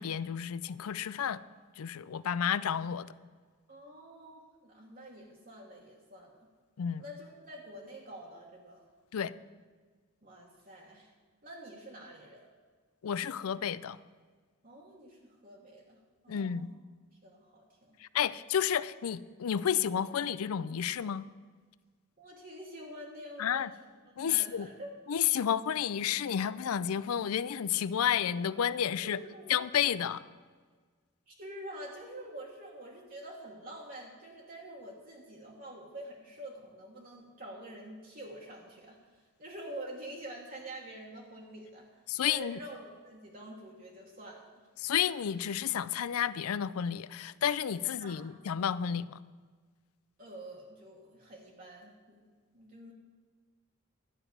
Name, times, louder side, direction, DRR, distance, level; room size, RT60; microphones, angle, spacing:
voice 1, 0.0-1.4 1.8-3.1 6.8-7.0 9.1-9.3 13.0-14.0 16.3-16.7 18.0-21.3 23.4-23.7 24.2-24.7 25.1-29.2 29.5-30.2 42.1-42.6 44.8-49.2, left 9 dB, 90° left, 17 dB, 0.4 m, -31 dB
voice 2, 3.7-6.5 7.0-8.8 10.2-11.1 11.4-12.5 14.6-16.0 16.2-16.7 17.2-18.0 22.2-23.8 24.2-25.0 29.0-29.6 31.3-44.4 48.0-48.2 50.2-52.2 52.5-52.9, right 1 dB, 40° right, -2 dB, 1.4 m, -47 dB
12.0 x 5.9 x 9.3 m, 1.5 s
head